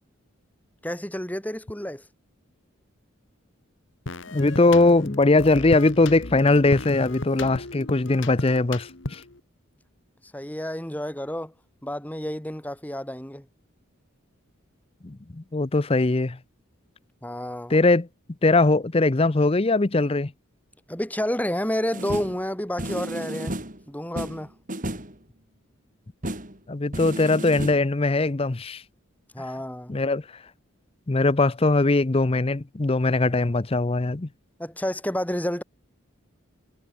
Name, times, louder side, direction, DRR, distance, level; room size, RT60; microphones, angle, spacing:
voice 1, 0.8-2.0 10.3-11.5 11.8-13.5 17.2-17.8 20.9-23.6 23.9-24.5 29.3-30.0 34.6-35.6, equal, 10° left, 3.1 m, -30 dB
sound 1, 4.1-9.4, left 2 dB, 60° left, 1.7 m, -35 dB
voice 2, 4.3-9.2 15.0-16.4 17.7-18.1 18.4-20.3 26.7-28.8 29.9-30.2 31.1-34.3, left 2 dB, 30° left, 0.6 m, -21 dB
sound 2, 21.9-22.4 22.8-23.8 24.2-25.1 26.2-26.6 26.9-27.8, right 1 dB, 40° right, 7.8 m, -33 dB
head